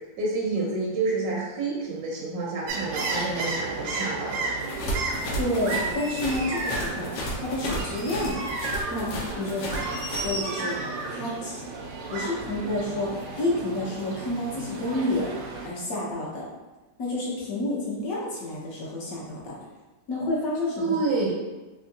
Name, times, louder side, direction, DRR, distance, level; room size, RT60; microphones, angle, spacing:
voice 1, 0.2-4.5 20.8-21.3, right 3 dB, 65° right, -4 dB, 1.1 m, -28 dB
sound 1, 2.7-15.7, right 3 dB, 85° right, 1.3 m, -33 dB
sound 2, 4.6-10.3, equal, 90° left, 1.4 m, -33 dB
voice 2, 5.4-7.1 7.4-8.4 8.9-9.7 10.2-10.7 11.1-11.6 12.1-15.3 15.6-16.5 17.0-19.5 20.1-20.9, left 1 dB, 60° left, -4 dB, 1.2 m, -29 dB
3.5 x 3.0 x 2.7 m, 1.1 s
omnidirectional pair, 1.9 m